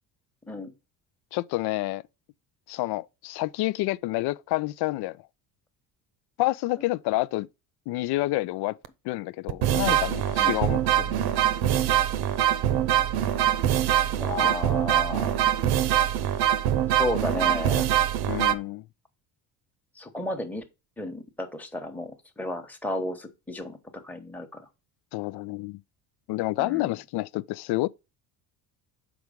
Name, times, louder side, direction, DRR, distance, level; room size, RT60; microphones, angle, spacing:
voice 1, 1.3-2.0 2.7-5.2 6.4-7.5 7.9-8.8 9.0-11.4 14.4-14.5 18.3-18.8 25.1-25.8 26.3-27.9, left 18 dB, 65° left, 0.5 m, -29 dB
sound 1, 8.8-8.9 9.5-18.5, right 11 dB, 60° right, 0.8 m, -23 dB
voice 2, 14.1-15.4 16.9-17.9 20.0-20.6 21.0-24.7 26.6-26.9, left 1 dB, 5° left, 1.1 m, -33 dB
6.1 x 4.8 x 5.1 m
cardioid pair, 105°, 43 cm